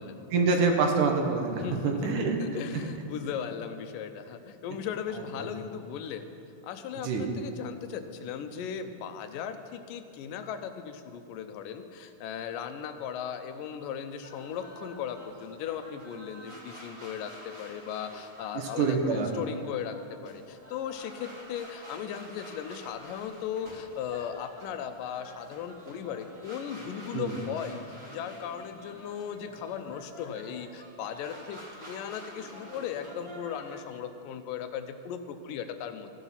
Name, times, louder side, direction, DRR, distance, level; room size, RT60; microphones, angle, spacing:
voice 1, 0.3-2.4 7.0-7.3 18.5-19.3 27.1-27.3, right 4 dB, 70° right, 2 dB, 2.6 m, -26 dB
voice 2, 1.6-6.3 6.6-36.1, left 8 dB, 85° left, 9 dB, 2.4 m, -37 dB
sound 1, 14.2-34.0, equal, 25° right, 2.8 m, -49 dB
15.0 x 11.0 x 5.7 m, 2.5 s
omnidirectional pair, 3.9 m